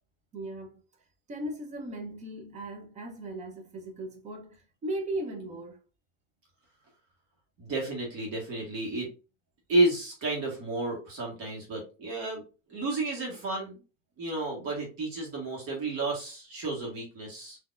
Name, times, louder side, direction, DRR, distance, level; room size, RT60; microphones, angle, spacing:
voice 1, 0.3-0.7 1.3-5.8, right 1 dB, 20° right, 0.7 m, -37 dB
voice 2, 7.6-9.1 9.7-12.4 12.7-13.7 14.2-17.6, right 2 dB, 40° right, 1.5 m, -31 dB
4.0 x 2.8 x 2.4 m
cardioid pair, 165°, 35 cm